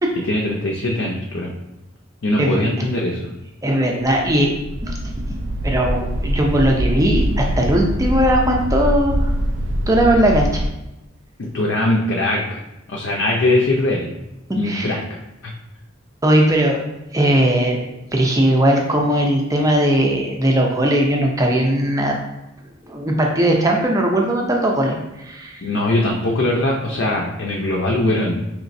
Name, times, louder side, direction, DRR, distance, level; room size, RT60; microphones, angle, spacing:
voice 1, 0.2-1.6 2.2-3.2 11.4-12.6 12.9-14.1 14.5-15.5 25.6-28.5, left 1 dB, 65° left, -1 dB, 0.5 m, -21 dB
voice 2, 3.6-4.5 4.8-9.3 9.9-10.6 14.6-14.9 16.2-16.8 17.1-17.8 18.1-22.2 22.9-25.6, right 1 dB, 15° right, 0 dB, 0.5 m, -18 dB
sound 1, 4.2-10.7, right 1 dB, 65° right, 0.4 m, -23 dB
4.8 x 3.1 x 2.6 m, 0.94 s
head